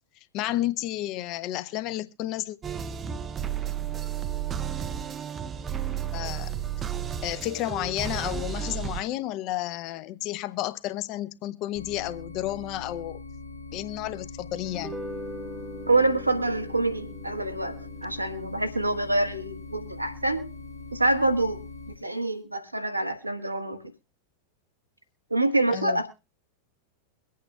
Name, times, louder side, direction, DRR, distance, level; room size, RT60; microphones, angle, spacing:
voice 1, 0.3-2.6 6.1-6.5 7.2-13.2 13.7-14.9 25.7-26.0, left 14 dB, 40° left, 0.7 m, -31 dB
sound 1, 2.6-9.0, right 8 dB, 20° right, 0.5 m, -32 dB
sound 2, 11.7-22.0, left 3 dB, 75° left, 1.7 m, -42 dB
sound 3, 14.6-21.2, left 1 dB, 5° right, 1.1 m, -43 dB
voice 2, 15.9-20.5 20.9-23.8 25.3-26.1, right 2 dB, 85° right, 1.2 m, -26 dB
23.0 x 8.5 x 2.3 m
figure-of-eight pair, 90°, 0 cm